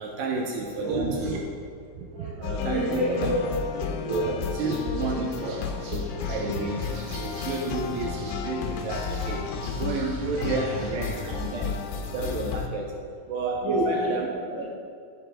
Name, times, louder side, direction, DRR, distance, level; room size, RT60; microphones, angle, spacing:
voice 1, 0.0-1.4 2.0-3.3 4.0-5.3 5.9-9.5 9.8-11.8 12.1-13.0 13.3-14.3, right 3 dB, 80° right, 0 dB, 2.7 m, -31 dB
voice 2, 0.8-1.3 2.1-3.4 4.1-4.4 4.6-5.9 9.4-9.6 11.1-11.2 13.6-14.2 14.5-14.6, right 1 dB, 10° right, -8 dB, 1.7 m, -30 dB
sound 1, 2.4-12.7, left 6 dB, 80° left, 3.0 m, -33 dB
sound 2, 4.6-11.0, right 2 dB, 60° right, 2.5 m, -43 dB
14.5 x 8.0 x 3.7 m, 2.3 s
omnidirectional pair, 5.2 m